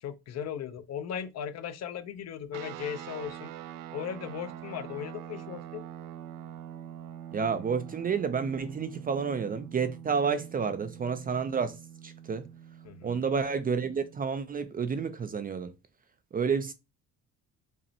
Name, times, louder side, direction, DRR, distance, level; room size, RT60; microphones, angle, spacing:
voice 1, 0.0-3.5 3.9-5.8 12.8-13.2, left 8 dB, 50° left, 0.6 m, -37 dB
sound 1, 2.5-14.3, right 10 dB, 80° right, 0.5 m, -44 dB
voice 2, 7.3-11.8 12.0-12.5 13.0-15.7 16.3-16.7, right 6 dB, 25° right, 0.4 m, -30 dB
5.2 x 2.1 x 2.7 m
cardioid pair, 115°, 33 cm